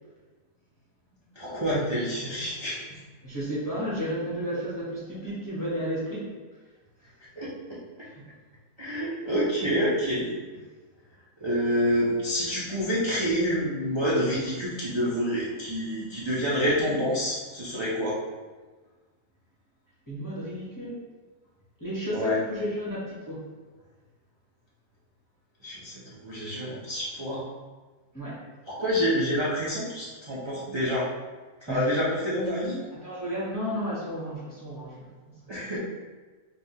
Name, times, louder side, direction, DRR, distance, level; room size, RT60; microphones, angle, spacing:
voice 1, 1.4-3.0 7.4-7.8 8.8-10.3 11.4-18.2 22.1-22.4 25.6-27.5 28.7-31.1 31.6-32.8 35.5-35.8, equal, 45° right, -9 dB, 0.3 m, -27 dB
voice 2, 3.2-6.4 8.0-8.2 20.1-21.1 21.8-23.4 28.1-28.4 31.7-31.9 32.9-35.1 35.6-35.8, equal, 20° left, -8 dB, 0.7 m, -33 dB
5.3 x 2.3 x 2.8 m, 1.3 s
omnidirectional pair, 1.6 m